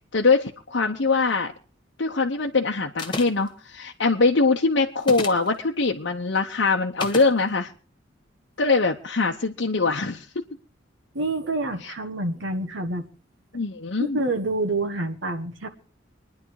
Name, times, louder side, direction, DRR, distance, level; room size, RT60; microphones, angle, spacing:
voice 1, 0.1-1.5 2.0-7.7 8.6-10.4 11.8-11.9 13.5-14.2, left 3 dB, 60° left, 1 dB, 0.9 m, -23 dB
sound 1, 3.0-3.5 5.0-5.5 7.0-7.3, left 2 dB, 25° left, 1.6 m, -31 dB
voice 2, 11.1-13.1 14.0-15.7, right 2 dB, 70° right, 6 dB, 1.5 m, -27 dB
24.5 x 10.5 x 4.8 m, 0.39 s
head